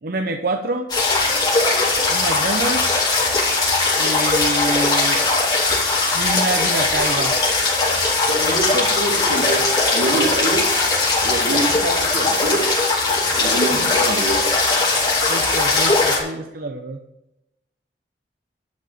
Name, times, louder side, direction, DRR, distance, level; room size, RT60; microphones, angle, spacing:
voice 1, 0.0-0.9 2.1-2.9 4.0-5.2 6.1-7.3 13.7-13.9 15.3-17.0, right 2 dB, 55° right, 5 dB, 0.7 m, -26 dB
sound 1, 0.9-16.2, left 3 dB, 25° left, 3.8 m, -19 dB
voice 2, 8.3-9.6 9.9-10.6 11.2-12.6 13.3-14.4, right 2 dB, 85° right, 1 dB, 2.8 m, -24 dB
12.0 x 6.4 x 7.1 m, 0.91 s
head